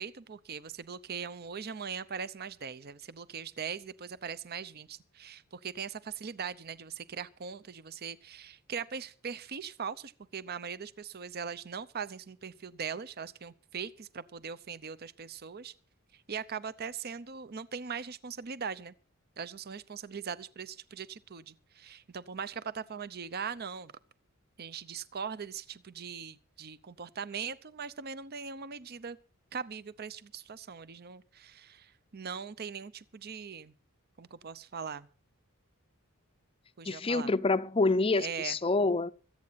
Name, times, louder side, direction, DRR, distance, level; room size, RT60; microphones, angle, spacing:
voice 1, 0.0-15.7 16.1-18.9 19.4-23.9 24.6-29.2 29.5-33.7 34.2-35.1 36.8-37.3 38.2-38.6, right 6 dB, 45° right, 0.7 m, -40 dB
voice 2, 36.8-39.1, left 3 dB, 25° left, 0.5 m, -27 dB
25.0 x 8.6 x 4.1 m
head